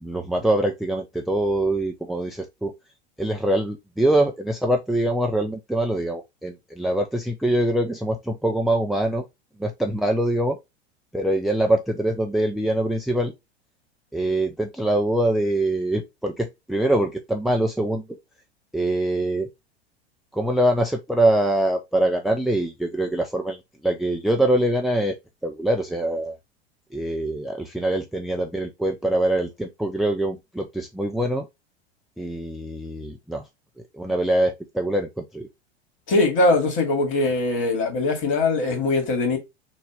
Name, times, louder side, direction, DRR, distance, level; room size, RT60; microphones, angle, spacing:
voice 1, 0.0-2.7 3.2-9.2 9.6-10.6 11.1-13.3 14.1-18.0 18.7-19.5 20.3-23.6 23.8-25.2 25.4-26.4 26.9-31.5 32.2-33.4 33.9-35.5, right 1 dB, ahead, 0.5 m, -24 dB
voice 2, 36.1-39.4, left 2 dB, 40° left, 2.3 m, -21 dB
6.4 x 2.4 x 3.4 m
figure-of-eight pair, 85°, 32 cm